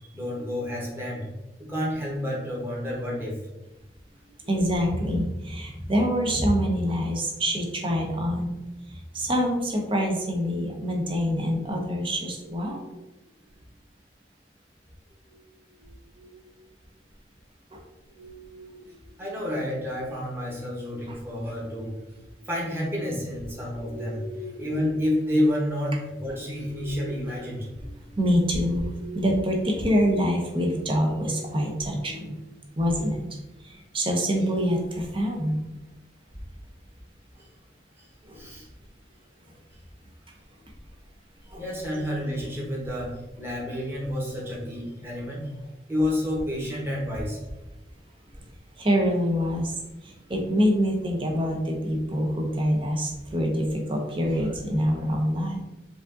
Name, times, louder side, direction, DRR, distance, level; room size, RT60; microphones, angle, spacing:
voice 1, 0.1-1.3 1.6-3.4 19.2-21.9 22.5-27.6 38.3-38.7 41.6-43.1 43.4-45.5 45.9-47.4, left 1 dB, 15° right, -4 dB, 1.2 m, -29 dB
voice 2, 4.4-8.5 8.9-13.0 15.8-16.4 17.7-17.8 18.1-18.8 21.1-21.2 23.7-24.4 26.7-27.3 27.8-32.4 32.8-33.2 33.6-35.6 38.2-38.4 41.5-41.6 48.8-49.8 50.0-55.6, equal, 30° right, 1 dB, 0.8 m, -26 dB
5.0 x 2.6 x 3.8 m, 1.0 s
head